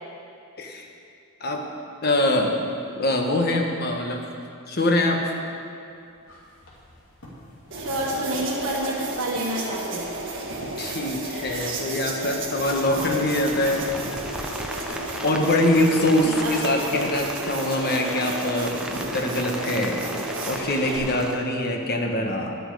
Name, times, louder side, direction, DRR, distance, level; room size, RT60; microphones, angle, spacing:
voice 1, 2.0-2.6 3.0-4.3 4.7-5.3 10.8-13.9 15.2-22.5, left 1 dB, 45° left, 2 dB, 1.1 m, -24 dB
sound 1, 5.9-19.9, equal, 75° left, 2.7 m, -45 dB
sound 2, 7.7-21.0, right 2 dB, 55° right, 1.7 m, -33 dB
voice 2, 7.7-10.0 16.2-16.8, right 1 dB, 85° right, -3 dB, 1.3 m, -28 dB
Rain, 12.7-21.3, right 1 dB, 5° right, 0.5 m, -36 dB
11.0 x 10.0 x 4.8 m, 2.5 s
head